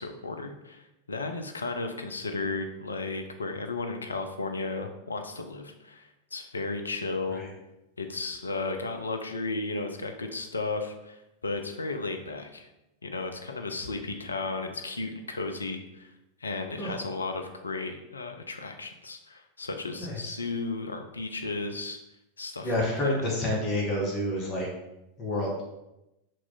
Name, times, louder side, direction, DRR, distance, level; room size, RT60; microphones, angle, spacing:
voice 1, 0.0-7.4 8.0-12.7 13.0-16.1 16.4-22.0 22.4-23.2, left 3 dB, 75° left, 5 dB, 0.3 m, -34 dB
voice 2, 20.0-20.3 22.6-24.7 25.2-25.6, left 1 dB, 30° left, -3 dB, 0.9 m, -29 dB
2.9 x 2.4 x 3.8 m, 0.91 s
figure-of-eight pair, 90°, 0 cm